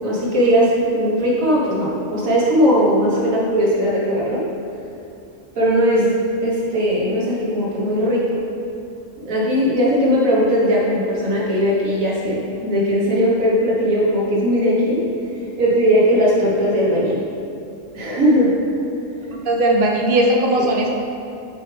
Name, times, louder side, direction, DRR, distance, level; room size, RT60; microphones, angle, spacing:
voice 1, 0.0-4.4 5.6-6.1 6.4-8.3 9.3-15.0 15.6-17.3 17.9-18.6, equal, 80° right, -5 dB, 1.7 m, -18 dB
voice 2, 19.4-20.9, right 1 dB, 50° right, 0 dB, 0.8 m, -18 dB
7.1 x 4.5 x 3.4 m, 2.6 s
omnidirectional pair, 1.4 m